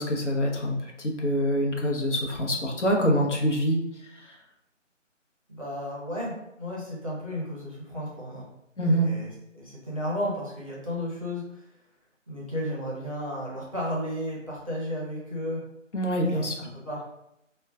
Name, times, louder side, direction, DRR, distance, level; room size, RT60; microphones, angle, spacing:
voice 1, 0.0-3.8 4.1-4.4 8.8-9.1 15.9-16.7, equal, 65° left, 0 dB, 0.8 m, -25 dB
voice 2, 5.5-8.4 8.8-11.7 12.3-15.6 16.1-17.0, equal, 25° right, -5 dB, 0.6 m, -33 dB
4.5 x 2.2 x 2.4 m, 0.83 s
figure-of-eight pair, 165°, 39 cm